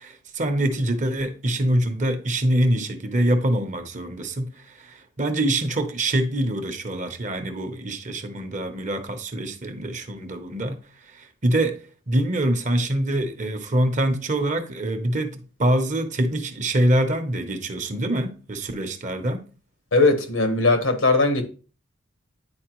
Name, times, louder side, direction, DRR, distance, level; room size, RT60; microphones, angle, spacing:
voice 1, 0.0-10.8 11.1-19.5, right 1 dB, 40° right, 0.9 m, -25 dB
voice 2, 19.9-21.4, left 3 dB, 90° left, 1.3 m, -19 dB
9.7 x 4.4 x 3.0 m
head